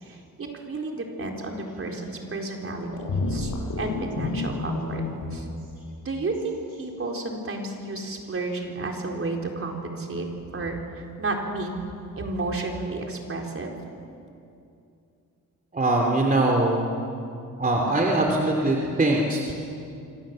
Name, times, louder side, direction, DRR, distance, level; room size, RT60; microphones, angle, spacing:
voice 1, 0.0-5.0 5.3-5.5 6.0-10.3 10.5-11.8 12.2-13.7, right 2 dB, 45° right, 1 dB, 4.2 m, -32 dB
sound 1, 2.9-5.4, left 3 dB, 60° left, 6.9 m, -29 dB
voice 2, 15.7-16.9 17.6-19.5, right 2 dB, 25° right, 0 dB, 3.0 m, -22 dB
26.5 x 26.0 x 7.7 m, 2.6 s
wide cardioid pair, 120°, 32 cm